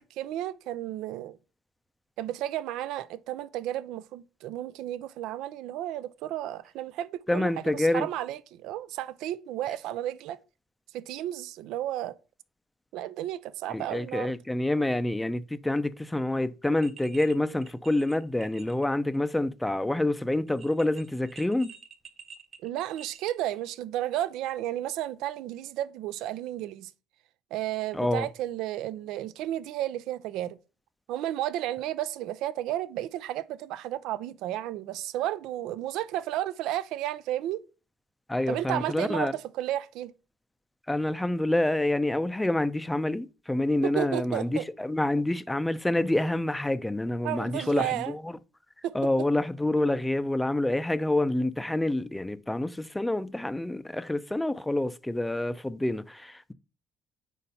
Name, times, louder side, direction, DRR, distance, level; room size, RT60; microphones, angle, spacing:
voice 1, 0.2-1.4 2.2-10.4 10.9-12.1 12.9-14.3 22.6-26.9 27.5-30.6 31.1-37.6 38.5-40.1 43.8-44.6 47.2-48.1 48.8-48.9, right 13 dB, 80° right, 0.4 m, -33 dB
voice 2, 7.3-8.1 13.7-21.7 27.9-28.3 38.3-39.3 40.9-48.3 48.9-56.5, left 1 dB, 10° left, 0.4 m, -27 dB
sound 1, 16.8-17.3 17.6-18.8 19.1-19.2 20.5-23.3, right 6 dB, 45° right, 0.8 m, -49 dB
4.5 x 4.2 x 5.3 m
cardioid pair, 90°, 0 cm